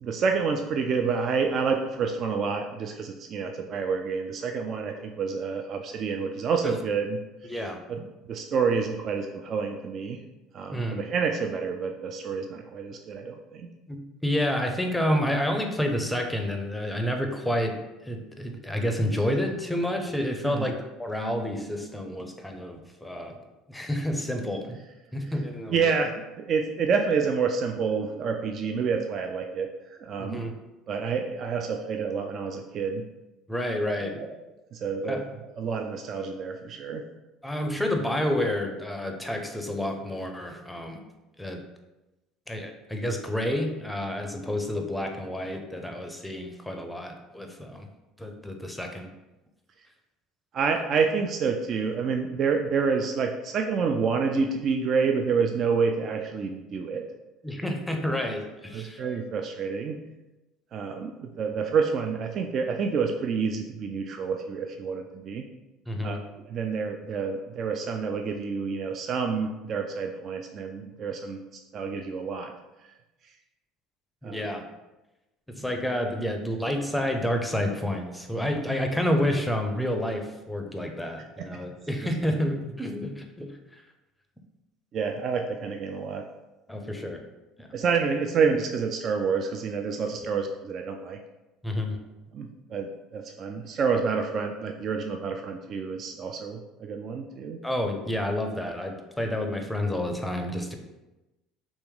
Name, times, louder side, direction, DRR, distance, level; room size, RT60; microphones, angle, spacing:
voice 1, 0.0-8.0 8.3-10.2 10.5-13.7 20.4-20.7 25.7-30.4 30.9-33.0 33.8-34.3 34.7-35.2 35.6-37.0 50.5-57.0 58.7-60.0 60.7-65.4 66.0-71.4 71.7-72.5 74.2-74.4 81.4-81.5 82.0-82.1 84.9-86.2 87.7-91.2 92.3-97.6, right 5 dB, 50° right, 4 dB, 0.3 m, -28 dB
voice 2, 7.5-7.8 10.7-11.0 13.9-17.8 18.0-23.4 23.7-24.8 25.1-26.0 30.2-30.5 33.5-34.2 35.1-35.3 37.4-41.0 41.4-41.6 42.5-47.9 48.2-49.1 57.4-59.0 65.9-66.2 74.2-74.6 75.5-83.6 86.7-87.2 87.6-87.7 91.6-92.0 97.6-100.7, left 1 dB, 5° left, 4 dB, 0.6 m, -29 dB
3.0 x 2.9 x 3.6 m, 1.0 s
hypercardioid pair, 70°, 0 cm